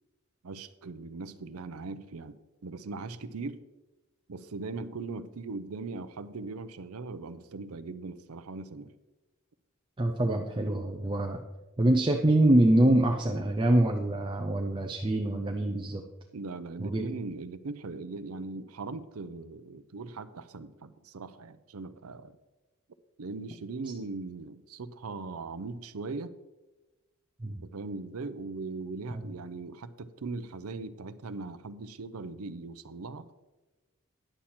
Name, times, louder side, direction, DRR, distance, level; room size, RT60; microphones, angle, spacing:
voice 1, 0.4-2.4 2.6-3.6 4.3-8.9 16.3-22.4 23.2-26.3 27.5-33.3, right 3 dB, 80° right, 13 dB, 0.6 m, -39 dB
voice 2, 10.0-11.4 11.8-16.0 16.8-17.1 27.4-27.6 29.1-29.3, right 1 dB, 25° right, 3 dB, 0.6 m, -25 dB
10.0 x 7.3 x 4.3 m, 1.1 s
head